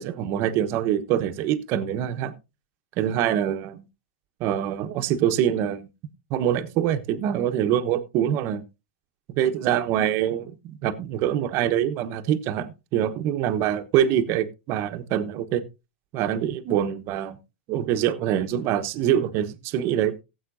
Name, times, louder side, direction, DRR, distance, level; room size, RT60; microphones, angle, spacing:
voice 1, 0.0-2.3 3.0-3.7 4.4-5.8 6.3-8.6 9.3-15.6 16.1-17.4 17.7-20.1, right 10 dB, 40° right, 1.1 m, -24 dB
18.0 x 8.0 x 2.6 m
hypercardioid pair, 125°, 6 cm